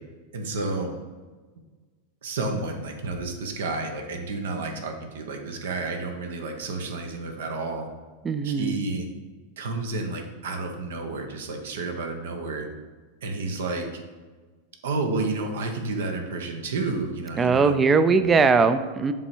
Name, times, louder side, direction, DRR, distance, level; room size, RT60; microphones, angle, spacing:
voice 1, 0.3-1.0 2.2-7.9 8.4-9.1 9.6-12.7 13.2-14.0 14.8-17.7 18.1-18.3, right 3 dB, 75° right, 4 dB, 0.9 m, -30 dB
voice 2, 8.2-8.8 17.4-19.1, right 4 dB, 25° right, 11 dB, 0.4 m, -20 dB
7.0 x 3.4 x 4.4 m, 1.4 s
hypercardioid pair, 100°, 0 cm